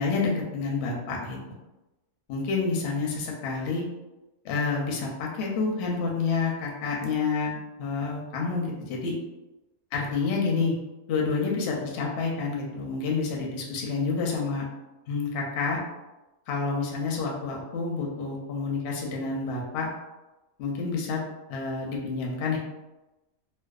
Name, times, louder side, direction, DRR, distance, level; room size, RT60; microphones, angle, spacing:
voice 1, 0.0-1.4 2.3-3.9 4.4-9.1 9.9-10.7 11.1-14.7 15.1-15.8 16.5-19.9 20.6-21.2 21.5-22.6, left 4 dB, 65° left, -1 dB, 0.7 m, -28 dB
2.5 x 2.1 x 2.3 m, 1.0 s
omnidirectional pair, 1.4 m